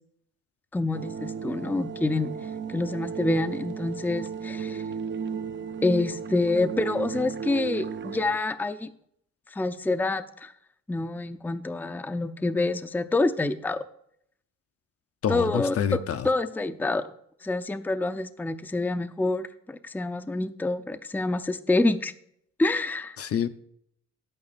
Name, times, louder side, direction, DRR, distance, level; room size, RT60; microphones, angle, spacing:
voice 1, 0.7-2.3 2.7-4.8 5.8-8.9 9.5-10.5 10.9-13.8 15.3-17.0 17.4-22.1 22.6-23.2, left 2 dB, 5° left, 0.5 m, -27 dB
sound 1, 0.9-8.4, right 6 dB, 40° right, 0.6 m, -34 dB
voice 2, 15.2-16.3 23.2-23.5, left 8 dB, 50° left, 0.7 m, -27 dB
9.4 x 8.7 x 4.1 m
cardioid pair, 90°, 30 cm